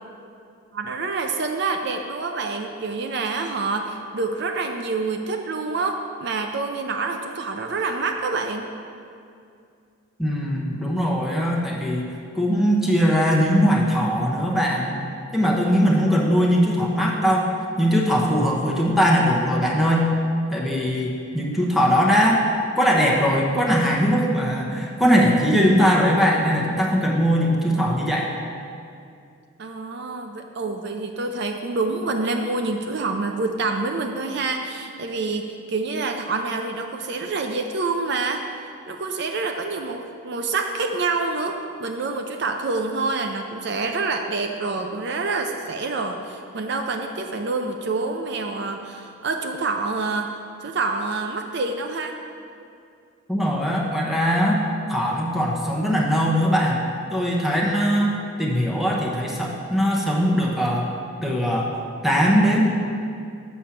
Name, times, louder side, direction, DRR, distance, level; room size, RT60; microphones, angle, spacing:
voice 1, 0.7-8.7 29.6-38.5 38.9-50.4 50.6-52.2, right 3 dB, 55° right, 4 dB, 0.5 m, -27 dB
voice 2, 10.2-15.0 15.3-17.5 17.8-20.1 20.5-22.5 22.8-28.3 53.3-54.6 54.9-60.9 61.2-62.7, equal, ahead, -2 dB, 0.9 m, -20 dB
7.1 x 6.2 x 5.8 m, 2.4 s
head